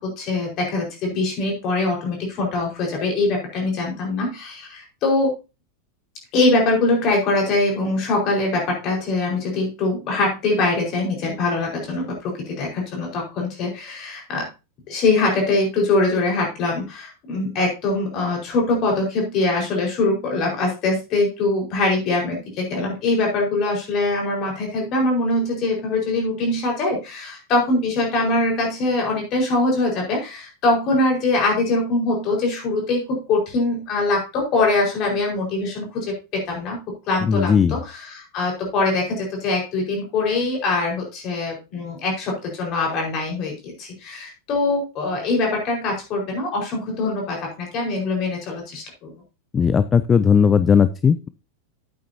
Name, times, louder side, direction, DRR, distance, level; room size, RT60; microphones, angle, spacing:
voice 1, 0.0-5.3 6.3-14.5 14.9-36.8 37.1-49.1, left 2 dB, 35° left, 0 dB, 4.9 m, -23 dB
voice 2, 37.2-37.8 49.5-51.3, left 6 dB, 20° left, 14 dB, 0.4 m, -17 dB
11.5 x 8.7 x 2.8 m, 0.29 s
figure-of-eight pair, 90°, 0 cm